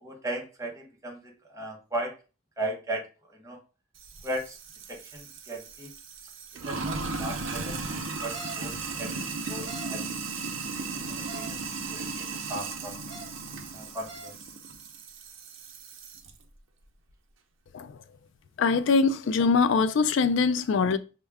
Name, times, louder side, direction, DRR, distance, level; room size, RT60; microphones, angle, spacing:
voice 1, 0.0-2.2 2.6-3.6 4.2-4.6 4.9-5.9 6.5-10.2 10.8-13.0 13.7-14.5, right 1 dB, 15° right, 0.9 m, -37 dB
Sink (filling or washing), 4.0-16.3, right 4 dB, 80° right, 0.7 m, -36 dB
sound 1, 8.1-8.6 9.4-9.9 11.1-11.5 12.9-13.3 13.9-14.3, right 2 dB, ahead, 2.0 m, -42 dB
voice 2, 18.6-21.0, left 4 dB, 70° left, 0.3 m, -23 dB
6.3 x 2.2 x 3.4 m
head